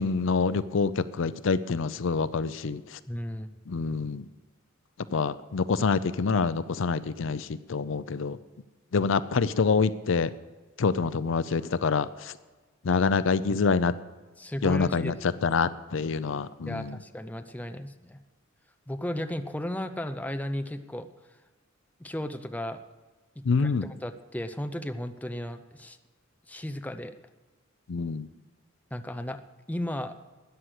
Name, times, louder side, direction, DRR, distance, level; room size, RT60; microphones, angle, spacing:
voice 1, 0.0-2.8 3.7-4.2 5.1-8.4 8.9-10.3 10.8-12.3 12.8-13.9 14.6-15.1 15.4-16.9 23.5-23.8 27.9-28.3, left 4 dB, 65° left, 15 dB, 0.5 m, -26 dB
voice 2, 3.1-3.5 14.4-15.2 16.7-18.2 18.9-21.1 22.0-22.8 23.6-26.0 26.5-27.2 28.9-29.4 29.7-30.2, left 1 dB, 10° left, 8 dB, 0.6 m, -34 dB
13.5 x 9.6 x 6.5 m, 1.3 s
head